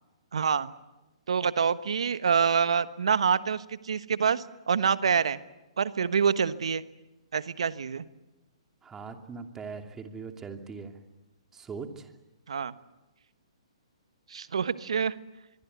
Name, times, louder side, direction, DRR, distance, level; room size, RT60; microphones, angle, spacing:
voice 1, 0.3-0.7 1.3-5.4 5.8-6.8 7.3-8.0 12.5-12.7 14.3-15.1, right 6 dB, 70° right, 14 dB, 1.3 m, -26 dB
voice 2, 8.8-11.0 11.5-12.1, right 5 dB, 15° right, 5 dB, 2.8 m, -40 dB
25.5 x 23.0 x 8.2 m, 1.0 s
figure-of-eight pair, 125°, 3 cm